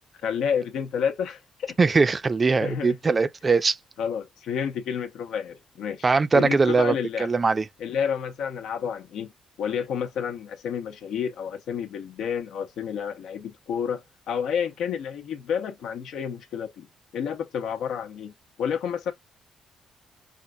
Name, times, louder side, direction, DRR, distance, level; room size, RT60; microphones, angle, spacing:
voice 1, 0.2-1.8 2.6-3.0 4.0-6.1 6.3-7.3 7.8-9.3 9.6-16.9 17.1-18.3 18.6-19.1, left 7 dB, 80° left, 0.9 m, -30 dB
voice 2, 1.8-3.8 6.0-7.7, right 4 dB, 30° right, 0.5 m, -21 dB
5.3 x 2.4 x 2.2 m
cardioid pair, 90°, 0 cm